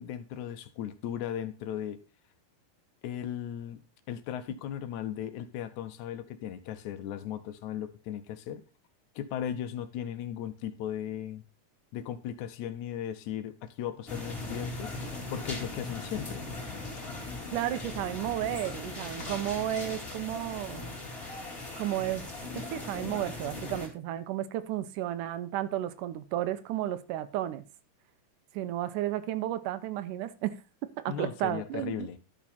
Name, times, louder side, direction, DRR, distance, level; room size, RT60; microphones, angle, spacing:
voice 1, 0.0-2.0 3.0-8.6 9.2-11.4 11.9-14.9 15.3-16.5 31.1-32.2, left 10 dB, 75° left, 2.0 m, -37 dB
sound 1, 14.1-23.9, left 2 dB, 20° left, 2.2 m, -39 dB
voice 2, 17.5-21.0 21.8-27.6 28.5-32.2, right 13 dB, 90° right, 2.3 m, -33 dB
11.5 x 6.2 x 4.2 m
omnidirectional pair, 3.6 m